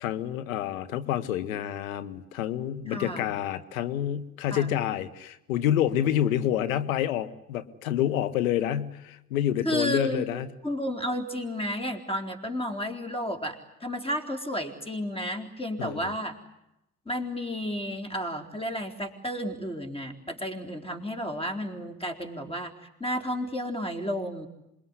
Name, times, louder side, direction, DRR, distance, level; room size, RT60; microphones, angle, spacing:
voice 1, 0.0-10.5 15.8-16.1, left 11 dB, 85° left, 13 dB, 1.4 m, -28 dB
voice 2, 2.9-3.3 4.5-4.7 9.6-10.2 10.6-16.4 17.1-22.7 23.0-24.5, equal, 15° left, 6 dB, 4.1 m, -32 dB
27.0 x 21.5 x 9.8 m, 0.86 s
hypercardioid pair, 60°, 40 cm